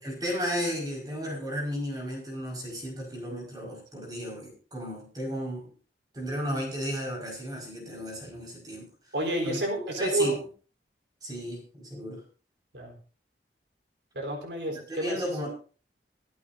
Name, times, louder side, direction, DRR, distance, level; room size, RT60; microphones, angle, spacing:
voice 1, 0.0-5.7 6.1-8.9 9.4-9.6 10.0-10.4 11.2-12.2 14.7-15.5, equal, 20° right, -2 dB, 5.3 m, -34 dB
voice 2, 9.1-10.4 12.7-12.9 14.1-15.2, right 1 dB, 75° right, 2 dB, 4.0 m, -30 dB
25.5 x 8.6 x 2.7 m, 0.38 s
head